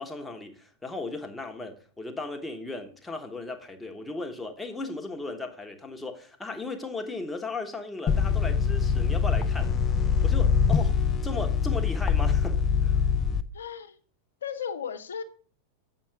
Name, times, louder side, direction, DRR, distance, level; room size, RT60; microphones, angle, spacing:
voice 1, 0.0-9.9 10.2-13.0, left 3 dB, 10° left, 1.2 m, -36 dB
sound 1, 8.1-13.4, left 6 dB, 25° left, 0.6 m, -24 dB
voice 2, 13.5-13.9 14.4-15.2, left 7 dB, 65° left, 0.8 m, -35 dB
8.2 x 5.8 x 4.9 m
figure-of-eight pair, 90°, 0 cm